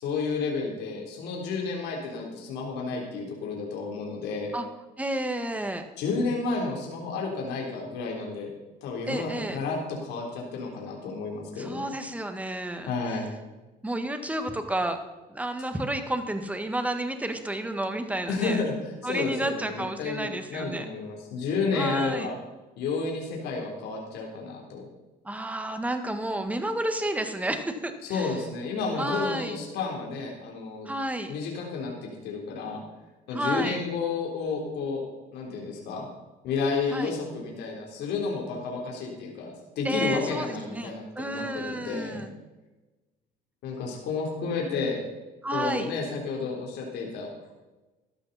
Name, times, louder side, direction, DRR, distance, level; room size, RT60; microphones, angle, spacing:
voice 1, 0.0-4.5 6.0-8.5 8.8-11.8 12.9-13.3 18.3-18.7 19.0-22.3 22.8-24.9 28.1-30.9 31.3-32.8 33.3-35.0 35.3-36.1 36.4-42.2 43.6-45.0 45.5-47.5, left 4 dB, 85° left, -1 dB, 3.6 m, -31 dB
voice 2, 5.0-5.8 9.1-9.6 11.6-12.9 13.8-15.0 15.3-18.6 19.0-20.8 21.7-22.3 25.2-28.3 29.0-29.6 30.8-31.3 33.3-33.8 36.9-37.1 39.8-40.9 41.2-42.3 45.4-45.9, right 1 dB, 10° right, 7 dB, 1.6 m, -31 dB
14.5 x 12.5 x 4.2 m, 1.1 s
cardioid pair, 110°, 17 cm